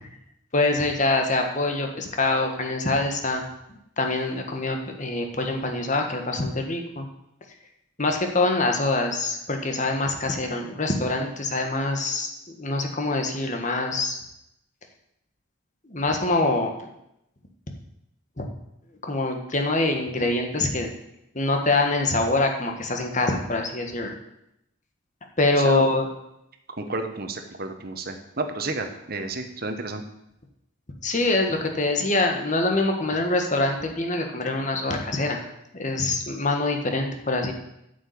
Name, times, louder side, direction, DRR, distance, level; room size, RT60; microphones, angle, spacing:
voice 1, 0.5-3.4 3.7-7.0 8.0-14.2 15.8-16.9 18.4-18.5 19.0-20.9 21.3-24.2 25.4-26.1 31.0-35.4 35.7-37.5, left 2 dB, 35° left, 3 dB, 1.5 m, -24 dB
voice 2, 26.8-30.0, right 3 dB, 50° right, 6 dB, 1.2 m, -31 dB
8.6 x 6.7 x 8.5 m, 0.83 s
head